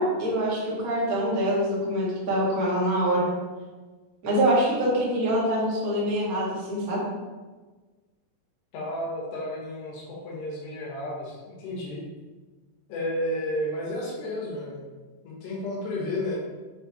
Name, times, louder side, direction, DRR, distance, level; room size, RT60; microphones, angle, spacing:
voice 1, 0.0-3.3 4.2-7.0, right 1 dB, 60° right, -6 dB, 0.9 m, -25 dB
voice 2, 8.7-12.0 12.9-14.9 15.2-16.4, left 1 dB, 75° left, -5 dB, 3.6 m, -32 dB
7.7 x 3.4 x 4.2 m, 1.3 s
omnidirectional pair, 5.0 m